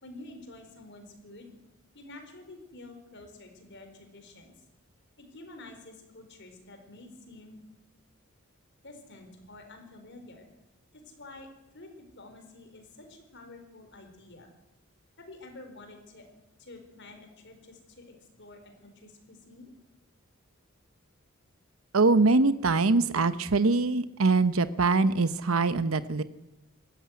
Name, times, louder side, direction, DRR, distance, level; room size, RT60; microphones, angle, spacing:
voice 1, 0.0-1.5 1.9-4.5 5.2-7.6 8.8-10.5 10.9-11.5 11.7-11.9 12.1-14.5 15.2-16.3 16.6-19.7, left 2 dB, 55° left, 6 dB, 4.3 m, -49 dB
voice 2, 21.9-26.2, right 3 dB, 80° right, 13 dB, 0.9 m, -23 dB
19.0 x 14.5 x 9.6 m, 0.96 s
head